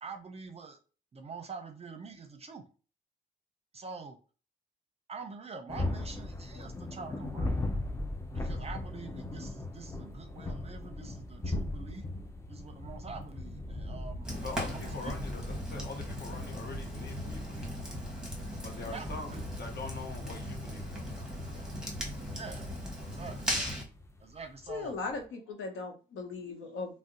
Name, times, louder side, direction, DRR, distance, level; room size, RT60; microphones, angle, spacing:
voice 1, 0.0-0.8 1.1-2.6 3.7-4.2 5.1-7.7 8.3-12.0 12.5-14.3 14.7-15.3 18.9-19.5 22.3-22.7 23.0-23.5 24.2-25.0, right 5 dB, 30° right, 0.6 m, -45 dB
sound 1, 5.7-25.2, left 2 dB, 15° left, 0.5 m, -40 dB
Fire, 14.2-23.8, equal, 5° right, 1.1 m, -38 dB
voice 2, 14.4-17.7 18.6-21.3, left 3 dB, 55° left, 1.0 m, -44 dB
voice 3, 24.7-27.0, left 3 dB, 80° left, 0.8 m, -38 dB
2.6 x 2.1 x 3.8 m
cardioid pair, 90°, 20 cm